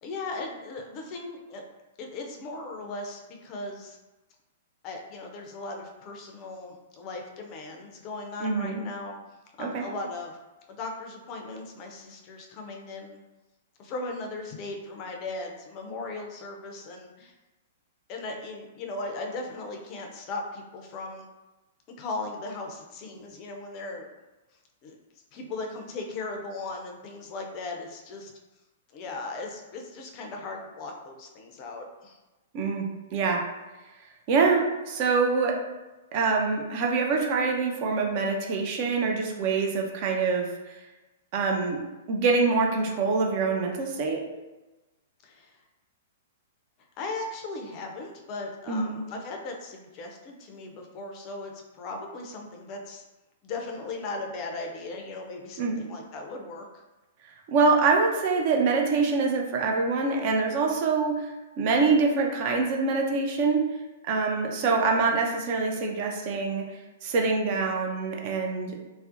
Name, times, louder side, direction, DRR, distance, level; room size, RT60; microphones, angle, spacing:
voice 1, 0.0-1.6 2.0-4.0 4.8-9.2 9.6-10.3 10.7-13.2 13.8-17.3 18.1-21.3 22.0-24.1 24.8-25.0 25.3-28.3 28.9-32.2 45.2-45.6 47.0-53.0 53.4-56.8, left 3 dB, 35° left, 2 dB, 0.4 m, -37 dB
voice 2, 8.4-8.8 9.6-9.8 32.5-33.5 34.3-35.6 36.1-40.8 41.3-41.8 42.1-44.2 48.7-49.0 55.6-55.8 57.5-63.6 64.0-66.7 67.0-68.8, right 4 dB, 45° right, 1 dB, 0.4 m, -25 dB
2.4 x 2.0 x 2.5 m, 1.1 s
figure-of-eight pair, 110°, 0 cm